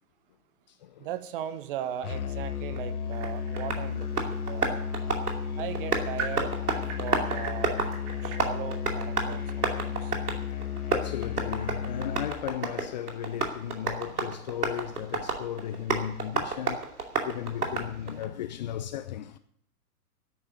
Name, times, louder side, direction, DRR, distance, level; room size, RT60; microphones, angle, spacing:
voice 1, 1.0-4.6 5.6-6.6 7.0-7.8 8.2-10.1, right 10 dB, 35° right, 1.1 m, -38 dB
Musical instrument, 2.0-12.4, left 7 dB, 70° left, 1.1 m, -33 dB
Tap, 2.8-18.3, right 3 dB, 75° right, 2.6 m, -33 dB
sound 1, 3.1-8.4, right 5 dB, 50° right, 3.4 m, -42 dB
voice 2, 10.9-16.8 17.2-19.4, left 11 dB, 30° left, 0.6 m, -35 dB
10.5 x 9.2 x 9.2 m
figure-of-eight pair, 115°, 46 cm